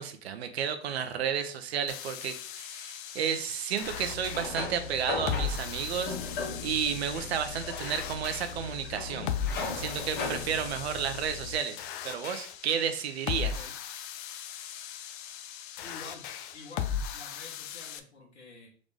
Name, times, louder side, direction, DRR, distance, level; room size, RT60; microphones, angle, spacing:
voice 1, 0.0-9.3 9.7-13.5, right 8 dB, 65° right, 8 dB, 0.8 m, -32 dB
sound 1, 1.9-18.0, left 8 dB, 50° left, 0.5 m, -38 dB
sound 2, 3.8-11.6, left 4 dB, 30° left, 1.2 m, -38 dB
voice 2, 13.3-13.7 15.8-16.3 16.5-18.7, left 2 dB, 80° left, -1 dB, 1.5 m, -49 dB
3.9 x 3.5 x 3.3 m, 0.44 s
hypercardioid pair, 120°, 34 cm